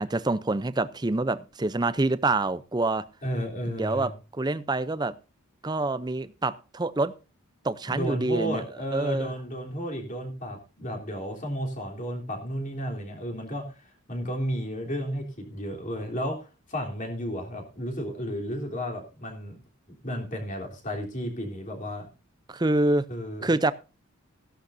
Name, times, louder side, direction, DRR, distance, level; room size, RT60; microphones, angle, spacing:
voice 1, 0.0-3.1 3.7-5.1 5.6-7.1 7.6-8.6 8.9-9.3 22.5-23.0 23.4-23.7, right 2 dB, 20° right, 0.5 m, -26 dB
voice 2, 3.2-4.1 7.9-19.6 20.0-22.1 23.1-23.5, equal, 35° left, 3.4 m, -33 dB
16.0 x 11.5 x 2.6 m
head